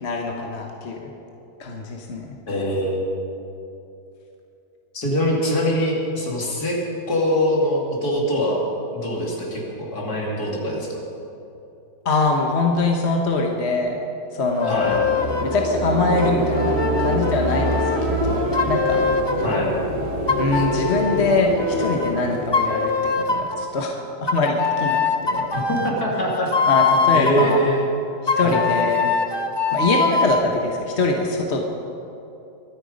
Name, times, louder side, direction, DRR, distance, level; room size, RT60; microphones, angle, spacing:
voice 1, 0.0-1.1 1.6-2.3 12.0-14.0 14.3-14.8 15.4-19.0 20.4-25.5 26.7-27.6 28.4-29.1 29.7-31.6, left 3 dB, 45° left, 1 dB, 1.3 m, -23 dB
voice 2, 2.5-3.0 4.9-6.8 7.1-8.6 8.9-11.0 14.6-15.0 19.4-19.7 20.5-20.6 25.5-26.5 27.1-27.9 28.4-28.7, equal, 60° left, -2 dB, 3.2 m, -23 dB
sound 1, 14.6-15.6 16.2-19.6 20.3-22.1 22.5-23.6 24.3-27.6 28.3-30.5, left 5 dB, 25° left, 0.6 m, -23 dB
sound 2, 14.7-23.7, right 1 dB, 40° right, 1.6 m, -26 dB
24.0 x 9.1 x 5.3 m, 2.8 s
omnidirectional pair, 1.9 m